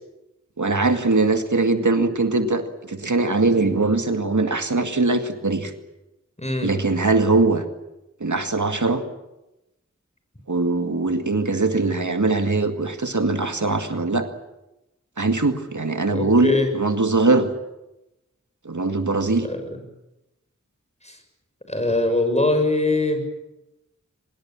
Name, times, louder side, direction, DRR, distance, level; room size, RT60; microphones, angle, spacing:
voice 1, 0.6-5.7 6.6-7.6 8.2-9.0 10.5-14.3 15.2-17.5 18.6-19.5, right 3 dB, 90° right, 7 dB, 2.2 m, -21 dB
voice 2, 6.4-6.7 16.1-16.7 19.4-19.8 21.0-21.2 21.7-23.2, left 2 dB, 20° left, 6 dB, 6.6 m, -22 dB
24.5 x 21.0 x 8.9 m, 0.93 s
wide cardioid pair, 40°, 29 cm